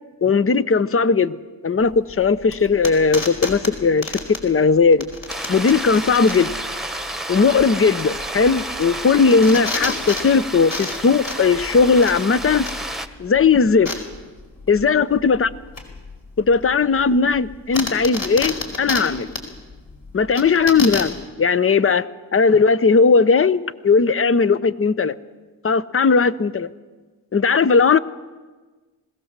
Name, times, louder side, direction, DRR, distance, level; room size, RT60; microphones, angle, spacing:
voice 1, 0.2-1.4 1.6-5.1 5.5-6.5 7.3-12.6 13.2-13.9 14.7-15.5 16.4-19.3 20.1-22.1 22.3-25.1 25.6-26.7 27.3-28.0, left 5 dB, 30° left, 16 dB, 0.8 m, -17 dB
sound 1, 1.8-21.2, left 3 dB, 50° left, 4.7 m, -32 dB
sound 2, 5.3-13.1, right 1 dB, ahead, 1.4 m, -30 dB
21.0 x 17.0 x 7.5 m, 1.3 s
cardioid pair, 65°, 44 cm